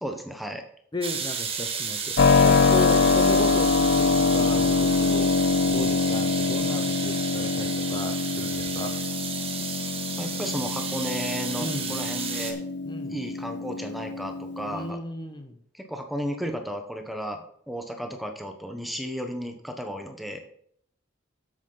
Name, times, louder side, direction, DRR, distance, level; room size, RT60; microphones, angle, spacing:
voice 1, 0.0-0.6 10.2-12.6 13.1-15.0 15.7-20.4, equal, ahead, 4 dB, 1.0 m, -34 dB
voice 2, 0.9-2.2 2.4-9.0 11.6-12.0 12.9-13.1 14.7-15.6, left 2 dB, 25° left, 6 dB, 0.9 m, -35 dB
sound 1, 1.0-12.5, right 6 dB, 30° right, 1.4 m, -32 dB
Keyboard (musical), 2.2-14.9, left 4 dB, 65° left, 0.4 m, -24 dB
9.5 x 7.8 x 4.0 m, 0.64 s
head